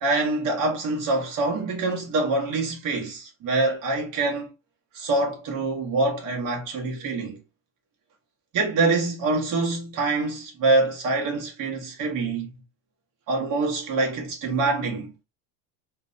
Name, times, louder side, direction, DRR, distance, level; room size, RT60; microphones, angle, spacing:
voice 1, 0.0-4.5 4.9-7.4 8.5-12.5 13.3-15.2, right 3 dB, 50° right, 1.0 m, -25 dB
2.5 x 2.1 x 2.4 m
cardioid pair, 135°, 42 cm